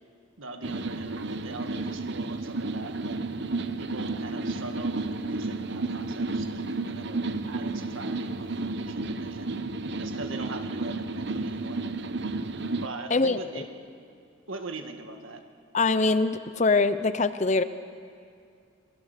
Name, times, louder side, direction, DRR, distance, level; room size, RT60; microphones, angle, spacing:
voice 1, 0.4-3.3 3.8-9.6 10.0-11.8 12.8-13.7 14.5-15.4, right 3 dB, 75° right, 5 dB, 1.8 m, -41 dB
sound 1, 0.6-12.9, right 3 dB, 55° right, 0.8 m, -32 dB
voice 2, 13.1-13.6 15.7-17.6, left 3 dB, 35° left, 13 dB, 0.6 m, -23 dB
27.5 x 19.5 x 6.7 m, 2.4 s
head